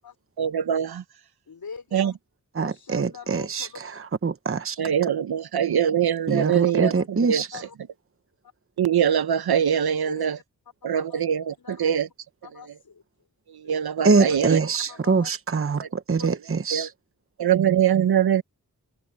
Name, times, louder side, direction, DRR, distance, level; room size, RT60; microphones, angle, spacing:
voice 1, 0.4-1.0 1.9-2.1 4.8-7.4 8.8-10.4 10.8-12.1 13.5-14.6 15.8-15.9 16.7-16.9 17.4-18.4, right 9 dB, 85° right, 0.8 m, -23 dB
voice 2, 1.5-2.2 2.6-3.8 6.5-6.6 7.0-7.1 7.5-7.8 10.1-10.4 10.8-11.2 11.6-12.0 12.4-13.0 13.6-13.8 14.2-15.3 16.2-16.3, left 5 dB, 70° left, 4.4 m, -42 dB
voice 3, 2.5-4.8 6.3-7.5 14.0-16.9, right 4 dB, 35° right, 0.9 m, -24 dB
open air
wide cardioid pair, 100°, 37 cm